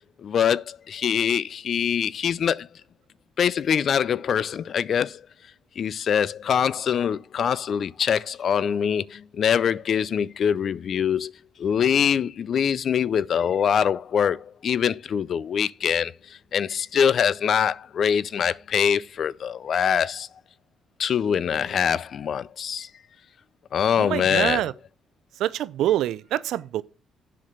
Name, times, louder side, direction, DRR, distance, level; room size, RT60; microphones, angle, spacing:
voice 1, 0.2-2.7 3.4-5.2 5.8-11.3 11.6-20.3 21.0-22.9 23.7-24.6, left 8 dB, 60° left, 0.4 m, -24 dB
voice 2, 24.0-24.7 25.4-26.8, right 12 dB, 80° right, 0.5 m, -25 dB
7.5 x 5.9 x 6.6 m
cardioid pair, 90°, 0 cm